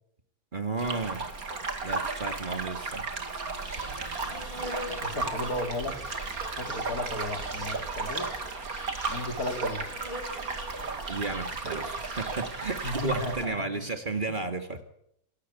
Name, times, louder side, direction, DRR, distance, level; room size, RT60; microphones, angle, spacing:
voice 1, 0.5-1.3 1.8-3.1 11.1-14.8, right 3 dB, 30° right, 7 dB, 2.1 m, -33 dB
sound 1, 0.8-13.5, right 4 dB, 65° right, 2.8 m, -34 dB
Insect, 3.6-13.4, left 1 dB, 20° left, 4.5 m, -44 dB
voice 2, 5.0-6.0 6.4-8.3 9.1-9.8 12.8-13.8 14.3-14.4, left 1 dB, 70° left, 6 dB, 3.4 m, -35 dB
27.5 x 13.0 x 9.6 m, 0.74 s
omnidirectional pair, 1.7 m